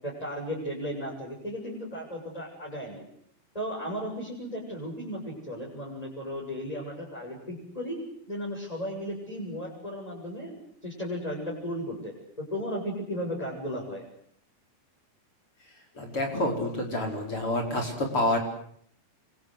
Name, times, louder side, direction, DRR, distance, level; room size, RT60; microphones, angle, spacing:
voice 1, 0.0-3.0 3.5-8.0 8.3-14.0, equal, 10° left, -3 dB, 7.3 m, -35 dB
voice 2, 16.0-18.4, left 1 dB, 35° left, 3 dB, 5.4 m, -28 dB
28.0 x 24.5 x 8.1 m, 0.64 s
omnidirectional pair, 4.7 m